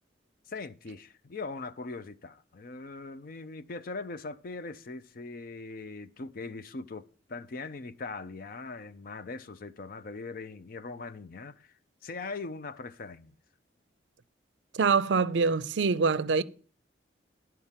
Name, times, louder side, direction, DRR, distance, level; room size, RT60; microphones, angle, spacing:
voice 1, 0.5-11.7 12.0-13.3, left 3 dB, 50° left, 0.5 m, -41 dB
voice 2, 14.7-16.4, right 5 dB, 70° right, 0.5 m, -25 dB
11.0 x 4.5 x 7.3 m
head